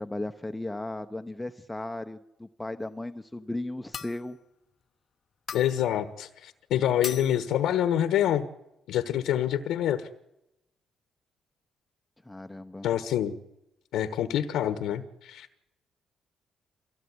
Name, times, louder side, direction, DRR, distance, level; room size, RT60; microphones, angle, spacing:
voice 1, 0.0-4.4 12.3-12.9, left 1 dB, 10° left, 7 dB, 0.9 m, -36 dB
sound 1, 3.9-4.4 5.5-5.9 7.0-7.5, left 7 dB, 50° left, 0.8 m, -39 dB
voice 2, 5.5-8.5 8.9-10.1 12.8-13.3 13.9-15.5, left 11 dB, 85° left, 9 dB, 1.2 m, -26 dB
23.5 x 16.0 x 9.6 m, 0.90 s
cardioid pair, 90°, 0 cm